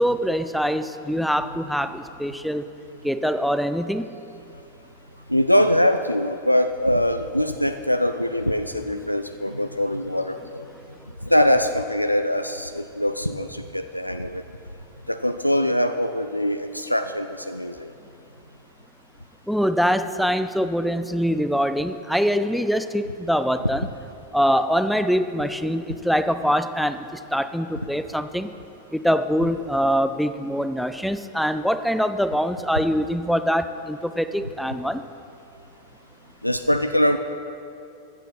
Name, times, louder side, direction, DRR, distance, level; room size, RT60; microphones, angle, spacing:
voice 1, 0.0-2.6 3.0-4.1 19.5-23.9 24.3-27.1 27.3-28.5 28.9-35.0, equal, ahead, 11 dB, 0.4 m, -23 dB
voice 2, 5.3-10.6 11.2-14.4 15.1-17.9 36.4-37.2, equal, 90° left, 9 dB, 0.3 m, -22 dB
14.5 x 8.1 x 4.2 m, 2.6 s
figure-of-eight pair, 90°, 0 cm